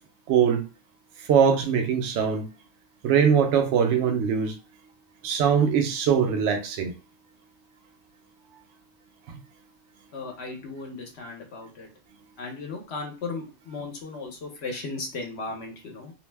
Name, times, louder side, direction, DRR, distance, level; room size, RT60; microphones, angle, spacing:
voice 1, 0.3-0.6 1.2-2.4 3.0-4.5 5.2-6.9 9.3-9.4, right 7 dB, 75° right, 4 dB, 0.9 m, -22 dB
voice 2, 10.1-11.9 12.4-16.1, left 3 dB, 70° left, 1 dB, 1.0 m, -36 dB
2.6 x 2.1 x 3.2 m, 0.33 s
omnidirectional pair, 1.2 m